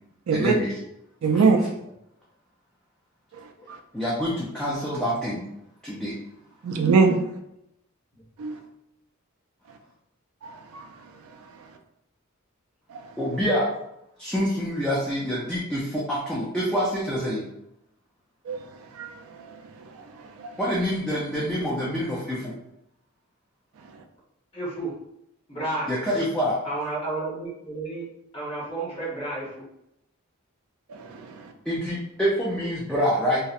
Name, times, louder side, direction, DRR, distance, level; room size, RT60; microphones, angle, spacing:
voice 1, 0.3-0.7 1.3-1.4 3.9-5.4 5.8-6.1 13.2-13.7 14.2-17.4 20.6-22.4 25.9-26.6 31.7-33.4, equal, 5° left, -7 dB, 0.4 m, -26 dB
voice 2, 1.2-1.6 6.6-7.2 8.4-8.6 10.4-10.8 18.5-18.6 19.0-19.1 30.9-31.3, right 5 dB, 70° right, 5 dB, 0.3 m, -21 dB
voice 3, 24.6-24.9 25.5-25.9 26.6-29.6, right 2 dB, 25° left, -6 dB, 0.9 m, -32 dB
2.7 x 2.0 x 2.4 m, 0.81 s
head